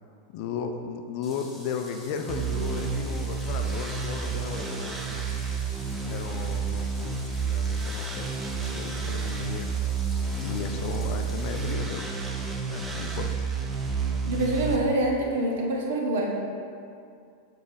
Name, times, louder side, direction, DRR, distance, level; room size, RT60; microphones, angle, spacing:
voice 1, 0.3-5.2 6.0-9.7 10.4-12.2 12.7-13.3, left 6 dB, 45° left, 5 dB, 0.5 m, -35 dB
sound 1, 1.2-11.7, left 2 dB, 10° left, 1.6 m, -48 dB
sound 2, 2.3-14.8, right 5 dB, 15° right, 0.7 m, -30 dB
voice 2, 14.2-16.4, right 1 dB, 55° right, 0 dB, 1.2 m, -26 dB
7.1 x 3.8 x 5.0 m, 2.4 s
figure-of-eight pair, 90°, 0 cm